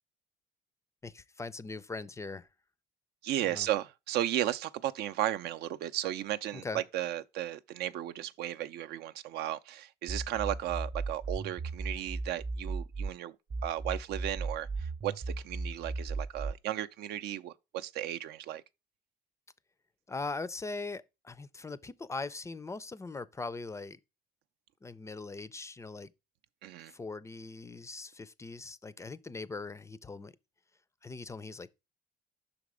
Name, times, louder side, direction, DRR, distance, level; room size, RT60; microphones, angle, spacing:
voice 1, 1.0-2.5 3.4-3.7 6.5-6.8 20.1-24.0 24.8-26.1 26.9-30.3 31.0-31.7, left 3 dB, 15° left, 0.4 m, -41 dB
voice 2, 3.2-13.3 13.6-18.6 26.6-26.9, right 12 dB, 75° right, 0.5 m, -35 dB
sound 1, 10.1-13.1 13.5-16.5, right 3 dB, 35° right, 0.7 m, -36 dB
5.9 x 4.1 x 4.8 m
cardioid pair, 110°, 17 cm